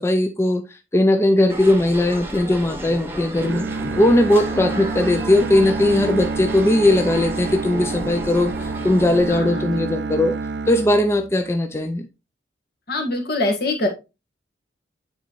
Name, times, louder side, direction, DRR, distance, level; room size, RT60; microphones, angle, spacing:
voice 1, 0.0-3.7 3.9-10.4 10.7-12.1, left 1 dB, 15° left, 0.4 m, -19 dB
sound 1, 1.5-9.4, right 1 dB, 15° right, 0.9 m, -33 dB
Bowed string instrument, 3.4-11.6, right 4 dB, 75° right, 0.4 m, -29 dB
voice 2, 9.3-9.8 12.9-13.9, left 2 dB, 60° left, 1.6 m, -24 dB
9.1 x 4.0 x 3.0 m
head